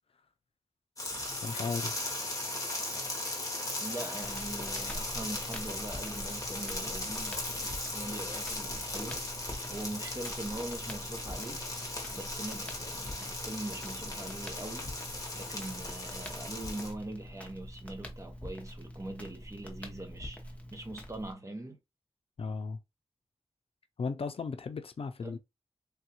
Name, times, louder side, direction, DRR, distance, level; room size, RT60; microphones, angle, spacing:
sound 1, 1.0-16.9, left 2 dB, 35° left, 0.9 m, -38 dB
voice 1, 1.4-1.9 22.4-22.8 24.0-25.4, left 4 dB, 65° left, 0.4 m, -35 dB
voice 2, 3.8-9.2 9.7-11.6 12.1-14.9 15.3-20.4 20.7-21.8 25.2-25.4, right 1 dB, 30° right, 0.9 m, -42 dB
Crackle, 4.2-21.3, equal, 15° left, 0.8 m, -45 dB
3.4 x 2.3 x 2.8 m
wide cardioid pair, 85°, 10 cm